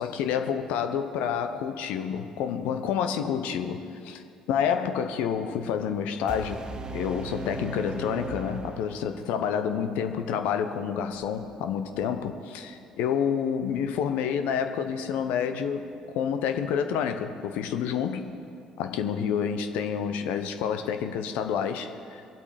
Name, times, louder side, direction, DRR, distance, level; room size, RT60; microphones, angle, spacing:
voice 1, 0.0-4.2 4.5-6.6 6.9-18.3 18.8-22.2, left 7 dB, 65° left, 0.8 m, -29 dB
sound 1, 6.3-9.3, right 3 dB, 30° right, 0.9 m, -37 dB
22.0 x 8.3 x 5.1 m
figure-of-eight pair, 50°, 3 cm